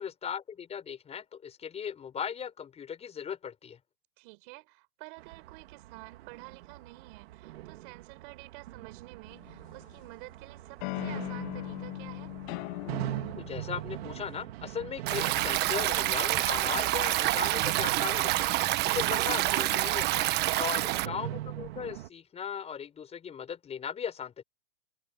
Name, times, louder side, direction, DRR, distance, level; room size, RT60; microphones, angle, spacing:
voice 1, 0.0-3.8 13.4-18.5 18.8-20.3 20.6-24.4, left 7 dB, 20° left, 5.5 m, -38 dB
voice 2, 4.2-12.3 20.5-20.9, right 28 dB, 45° right, 5.6 m, -50 dB
sound 1, 5.2-22.1, right 14 dB, 65° right, 3.3 m, -42 dB
sound 2, 9.3-10.1 10.8-14.4, left 25 dB, 45° left, 1.9 m, -39 dB
Stream, 15.1-21.1, right 17 dB, 30° right, 1.3 m, -27 dB
hypercardioid pair, 140°, 34 cm